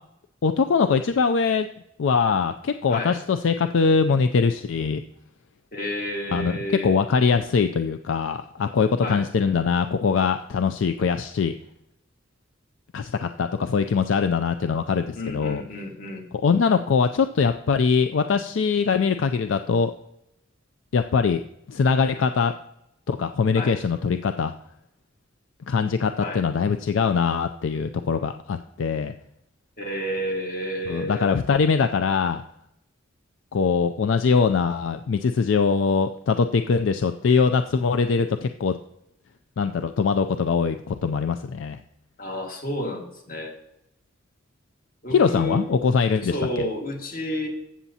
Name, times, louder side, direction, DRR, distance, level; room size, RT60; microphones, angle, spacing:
voice 1, 0.4-1.7 2.0-5.0 6.3-6.6 6.8-11.5 12.9-15.6 16.4-19.9 20.9-21.4 21.7-22.5 23.1-24.5 25.7-29.1 30.9-32.4 33.5-38.8 39.6-41.8 45.1-46.6, left 5 dB, 75° left, 9 dB, 0.4 m, -22 dB
voice 2, 2.9-3.2 5.7-7.0 9.0-9.2 15.2-16.3 23.5-23.8 26.2-26.4 29.8-31.3 42.2-43.5 45.0-45.7 46.2-47.5, equal, 50° left, 2 dB, 1.8 m, -30 dB
15.0 x 7.1 x 2.8 m, 0.81 s
head